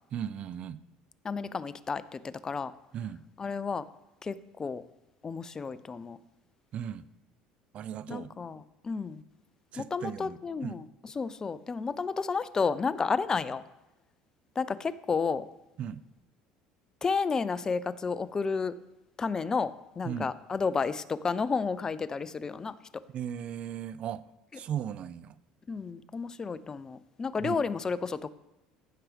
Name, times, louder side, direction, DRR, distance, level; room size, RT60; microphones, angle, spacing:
voice 1, 0.1-0.8 2.9-3.2 6.7-7.1 7.7-8.3 9.7-10.8 15.8-16.0 20.0-20.3 23.1-24.3 24.5-25.4 27.4-27.6, right 9 dB, 50° right, 17 dB, 0.5 m, -37 dB
voice 2, 1.2-2.7 3.4-3.8 4.2-4.8 5.2-6.2 8.1-9.2 9.8-13.6 14.6-15.5 17.0-18.7 19.2-22.7 25.7-28.3, left 5 dB, 25° left, 15 dB, 0.5 m, -31 dB
15.5 x 6.0 x 3.4 m, 0.99 s
supercardioid pair, 105°, 3 cm